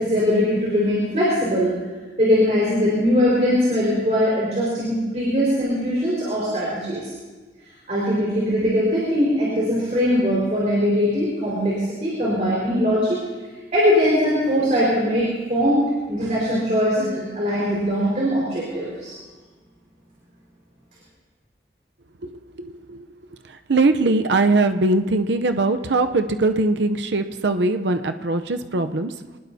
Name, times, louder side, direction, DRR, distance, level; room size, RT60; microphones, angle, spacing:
voice 1, 0.0-1.8 2.2-7.1 7.9-13.2 13.7-19.1, equal, 40° right, -6 dB, 4.8 m, -21 dB
voice 2, 22.2-23.1 23.5-29.1, right 2 dB, 85° right, 7 dB, 0.7 m, -21 dB
26.0 x 20.0 x 2.8 m, 1.3 s
head